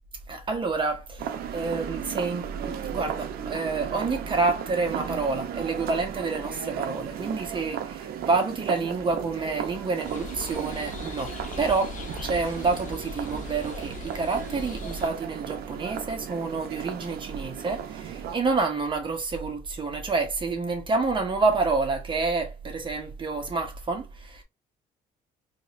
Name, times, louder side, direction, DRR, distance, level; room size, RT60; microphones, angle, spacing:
voice 1, 0.3-24.4, right 3 dB, 30° right, 1.1 m, -28 dB
sound 1, 1.2-18.4, right 9 dB, 65° right, 0.6 m, -36 dB
sound 2, 10.0-15.1, left 5 dB, 50° left, 0.7 m, -40 dB
3.9 x 2.8 x 2.5 m
cardioid pair, 110°, 17 cm